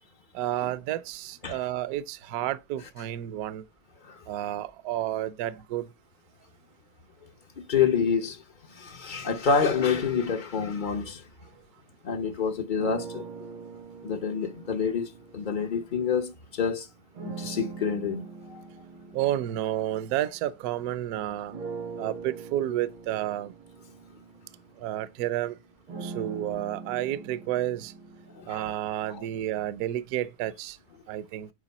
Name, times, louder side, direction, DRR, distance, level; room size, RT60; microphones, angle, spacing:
voice 1, 0.3-3.6 4.3-5.9 19.1-21.6 22.0-23.5 24.8-25.6 26.0-27.9 28.5-30.8 31.1-31.5, right 13 dB, 70° right, 0.9 m, -31 dB
voice 2, 7.7-8.4 8.8-11.2 12.0-13.2 14.0-16.9 17.4-18.2 18.5-18.6 28.4-28.6 29.1-29.2, left 6 dB, 70° left, 0.4 m, -27 dB
sound 1, 12.8-16.3 17.1-20.9 21.5-29.5, right 4 dB, 85° right, 2.7 m, -43 dB
8.9 x 4.4 x 4.1 m
omnidirectional pair, 2.2 m